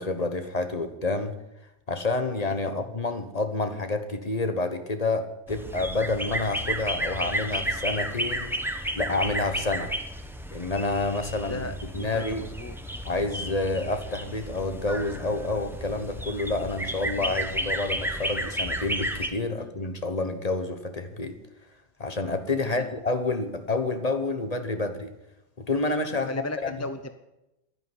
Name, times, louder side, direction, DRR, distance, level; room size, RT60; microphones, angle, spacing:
voice 1, 0.0-1.3 1.9-8.5 9.0-9.9 10.5-11.7 11.9-12.4 13.0-21.3 22.0-25.1 25.6-26.3 26.6-26.7, left 2 dB, 35° left, 8 dB, 1.3 m, -28 dB
sound 1, 5.5-19.3, right 1 dB, ahead, 1.1 m, -32 dB
voice 2, 11.4-12.8 17.1-17.4 19.5-19.7 22.6-22.9 26.1-27.1, left 2 dB, 15° left, 10 dB, 0.7 m, -37 dB
11.5 x 10.0 x 9.8 m, 0.91 s
omnidirectional pair, 1.2 m